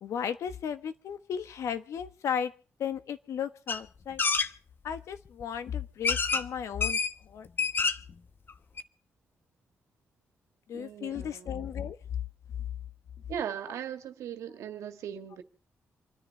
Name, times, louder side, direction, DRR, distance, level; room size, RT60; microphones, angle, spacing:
voice 1, 0.0-2.5 2.8-4.2 4.8-7.5 10.7-12.0, left 8 dB, 80° left, 1.3 m, -35 dB
sound 1, 3.7-3.8 4.2-4.5 5.4-5.5 6.0-6.5 6.8-7.1 7.5-8.1 8.5-8.6 8.8-8.9, left 5 dB, 45° left, 1.1 m, -27 dB
voice 2, 10.7-11.7 13.3-15.4, right 9 dB, 90° right, 1.8 m, -38 dB
27.5 x 10.0 x 4.1 m
cardioid pair, 85°, 5 cm